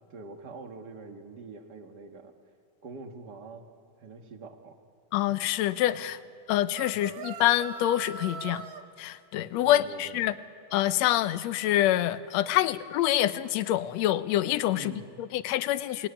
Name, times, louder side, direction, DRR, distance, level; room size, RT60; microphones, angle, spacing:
voice 1, 0.1-2.3 2.8-3.7 4.0-4.8 6.9-7.2 9.6-10.3 14.7-15.1, right 3 dB, 40° right, 4 dB, 1.9 m, -44 dB
voice 2, 5.1-6.2 6.5-8.6 9.0-10.3 10.7-14.9 15.2-16.1, left 13 dB, 75° left, 13 dB, 1.9 m, -26 dB
sound 1, 6.7-8.8, right 5 dB, 60° right, 2.0 m, -41 dB
27.5 x 19.5 x 10.0 m, 2.3 s
omnidirectional pair, 3.4 m